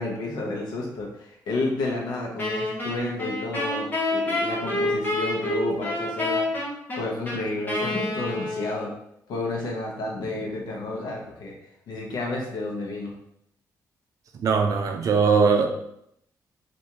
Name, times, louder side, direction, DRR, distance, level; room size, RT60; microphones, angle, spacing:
voice 1, 0.0-6.5 7.0-8.9 9.3-13.1, left 2 dB, 80° left, -1 dB, 0.9 m, -31 dB
Wind instrument woodwind instrument, 2.4-9.0, left 2 dB, 25° left, 0.9 m, -28 dB
voice 2, 14.3-15.7, right 5 dB, 55° right, 4 dB, 0.5 m, -20 dB
3.4 x 2.6 x 2.9 m, 0.76 s
cardioid pair, 150°, 7 cm